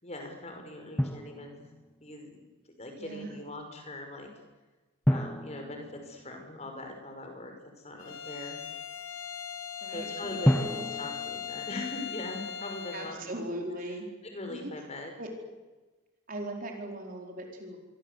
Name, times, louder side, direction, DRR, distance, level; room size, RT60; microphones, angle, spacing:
voice 1, 0.0-1.7 2.0-2.4 2.8-4.3 5.1-7.5 7.8-8.6 9.9-13.3 14.2-15.1, left 2 dB, 30° left, 4 dB, 5.7 m, -41 dB
Drum, 1.0-2.1 5.0-6.9 10.4-12.4, equal, 5° left, 0.9 m, -31 dB
voice 2, 3.0-3.4 9.8-10.8 12.9-14.1 14.5-14.7 15.2-15.3 16.3-17.8, right 1 dB, 40° right, 2 dB, 4.8 m, -39 dB
Bowed string instrument, 8.0-13.2, left 8 dB, 80° left, 3.3 m, -39 dB
26.5 x 23.5 x 8.4 m, 1.2 s
head